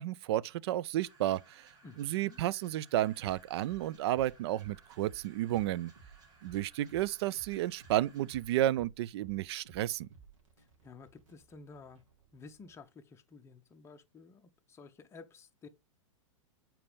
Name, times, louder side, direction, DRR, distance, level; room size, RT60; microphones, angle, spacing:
voice 1, 0.0-1.7 2.0-5.9 6.4-10.1, right 13 dB, 55° right, 0.4 m, -32 dB
sound 1, 1.0-8.6, right 3 dB, 25° right, 2.0 m, -62 dB
voice 2, 1.8-2.4 10.6-12.0 12.3-15.7, left 4 dB, 15° left, 0.7 m, -53 dB
sound 2, 3.2-12.8, right 5 dB, 70° right, 2.4 m, -58 dB
6.7 x 4.5 x 3.5 m
hypercardioid pair, 110°, 17 cm